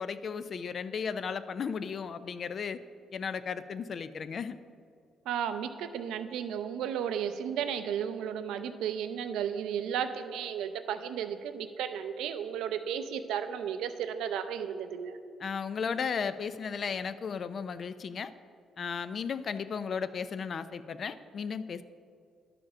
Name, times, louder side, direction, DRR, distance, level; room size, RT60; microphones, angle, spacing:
voice 1, 0.0-2.8 3.1-4.6 15.4-18.3 18.8-21.8, left 6 dB, 50° left, 13 dB, 0.4 m, -35 dB
voice 2, 5.3-15.2, right 8 dB, 90° right, 9 dB, 0.5 m, -34 dB
11.0 x 5.0 x 6.1 m, 2.3 s
cardioid pair, 90°, 0 cm